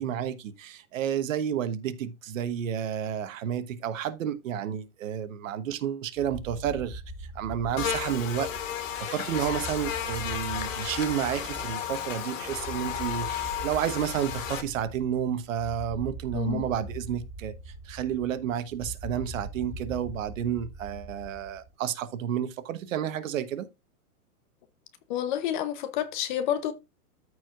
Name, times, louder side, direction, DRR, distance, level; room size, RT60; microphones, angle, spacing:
voice 1, 0.0-7.0 7.3-8.5 9.1-17.5 17.8-23.7, right 9 dB, 60° right, 1.2 m, -31 dB
sound 1, 6.2-21.7, right 1 dB, 5° right, 1.0 m, -42 dB
Buzz, 7.8-14.6, left 9 dB, 60° left, 2.1 m, -33 dB
voice 2, 16.3-16.6 25.1-26.7, left 11 dB, 30° left, 0.7 m, -29 dB
14.0 x 4.8 x 2.4 m
hypercardioid pair, 145°, 45 cm